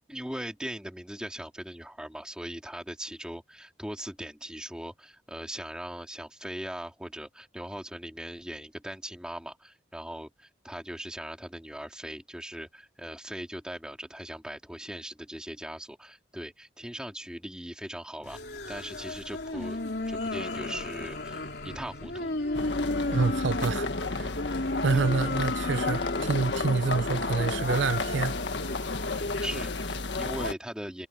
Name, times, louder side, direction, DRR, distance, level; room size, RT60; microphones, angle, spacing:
voice 1, 0.1-18.4 18.7-19.8 20.1-22.4 24.9-25.0 29.1-31.1, equal, 5° right, 3.2 m, -40 dB
sound 1, 18.2-29.5, left 2 dB, 65° left, 3.2 m, -34 dB
sound 2, 22.5-30.5, left 3 dB, 80° left, 1.5 m, -32 dB
voice 2, 23.1-24.3 24.8-28.4, right 4 dB, 90° right, 0.6 m, -27 dB
head